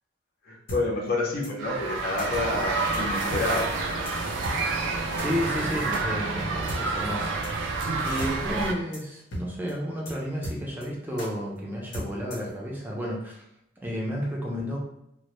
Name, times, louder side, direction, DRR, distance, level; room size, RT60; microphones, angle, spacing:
voice 1, 0.5-3.7 4.4-4.5, left 2 dB, 55° left, -2 dB, 0.6 m, -29 dB
sound 1, 0.7-0.8 1.4-1.5 2.2-2.3 2.9-3.0 3.3-3.4 3.7-3.8 4.1-4.2 4.4-4.6 5.2-5.3 5.9-6.0 6.7-6.8 7.4-7.5 7.8-7.9 8.2-8.3 8.6-8.7 8.9-9.0 9.3-9.4 9.7-9.8 10.1-10.2 10.4-10.9 11.2-11.3 11.9-12.5, equal, 85° left, 0.8 m, -35 dB
sound 2, 1.6-8.7, right 3 dB, 75° right, 0.3 m, -29 dB
voice 2, 5.2-7.4 8.0-13.4 13.8-14.8, equal, 10° right, -3 dB, 0.4 m, -32 dB
2.1 x 2.0 x 2.9 m, 0.80 s
head